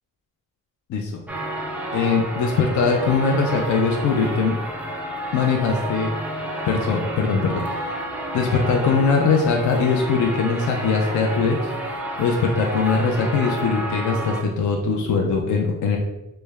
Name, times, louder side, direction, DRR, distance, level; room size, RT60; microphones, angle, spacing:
voice 1, 0.9-1.2 1.9-4.5 5.3-6.1 6.7-7.9 8.3-11.7 12.2-16.0, left 4 dB, 60° left, 0 dB, 0.5 m, -21 dB
sound 1, 1.3-14.4, equal, 5° right, 0.4 m, -30 dB
3.3 x 2.1 x 3.3 m, 0.95 s
cardioid pair, 130°, 35 cm